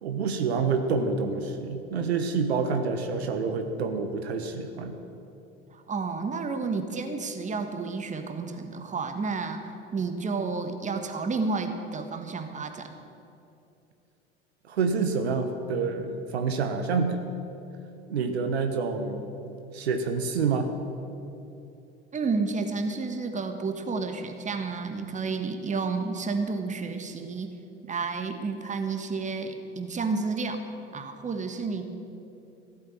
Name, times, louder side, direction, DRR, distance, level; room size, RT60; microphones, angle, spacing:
voice 1, 0.0-5.0 14.7-17.2 18.1-19.2 19.7-20.7, right 4 dB, 75° right, 6 dB, 1.2 m, -27 dB
voice 2, 5.7-9.7 9.9-12.9 22.1-27.5 27.8-30.6 30.9-31.9, right 4 dB, 20° right, 6 dB, 1.5 m, -31 dB
14.5 x 8.6 x 9.1 m, 2.8 s
figure-of-eight pair, 75°, 32 cm